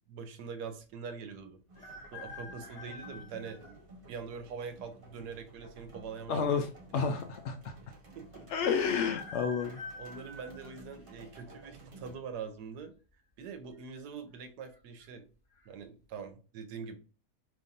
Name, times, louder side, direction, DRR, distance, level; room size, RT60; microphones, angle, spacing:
voice 1, 0.1-1.6 2.1-3.8 4.1-6.5 8.1-8.5 10.0-12.9 13.4-15.3 15.7-17.0, right 6 dB, 85° right, 7 dB, 1.3 m, -43 dB
sound 1, 1.7-3.8 4.4-4.5 5.6-6.3 6.6-6.7 6.8-6.9 8.8-11.4 11.9-12.3 13.4-13.8 14.0-14.1 14.7-15.1 15.5-15.7, left 3 dB, 20° left, 1.7 m, -47 dB
sound 2, 1.7-12.2, right 1 dB, 35° right, 1.3 m, -53 dB
voice 2, 6.3-6.7 6.9-7.7 8.5-9.8, left 6 dB, 70° left, 5 dB, 0.6 m, -30 dB
5.2 x 3.0 x 2.5 m, 0.36 s
omnidirectional pair, 1.7 m